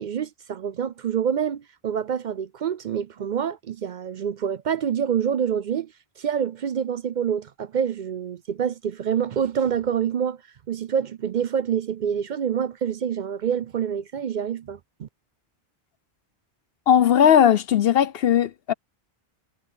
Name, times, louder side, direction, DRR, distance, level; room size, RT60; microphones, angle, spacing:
voice 1, 0.0-5.9 6.2-10.4 10.7-15.1, right 8 dB, 55° right, 0.6 m, -26 dB
voice 2, 16.9-18.7, left 9 dB, 75° left, 1.0 m, -18 dB
omnidirectional pair, 1.0 m